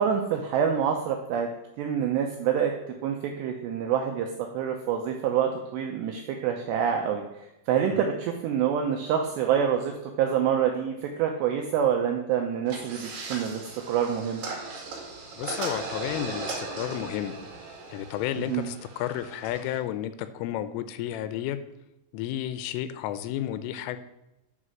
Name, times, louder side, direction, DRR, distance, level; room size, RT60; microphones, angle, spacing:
voice 1, 0.0-1.5 1.8-2.7 3.0-13.6 13.9-14.4 18.5-18.7, right 8 dB, 85° right, 3 dB, 2.4 m, -26 dB
sound 1, 12.7-19.8, right 3 dB, 55° right, 3.1 m, -38 dB
voice 2, 15.4-17.4 17.9-21.6 22.1-24.0, left 12 dB, 85° left, 12 dB, 3.1 m, -32 dB
9.9 x 5.4 x 6.3 m, 0.92 s
omnidirectional pair, 5.9 m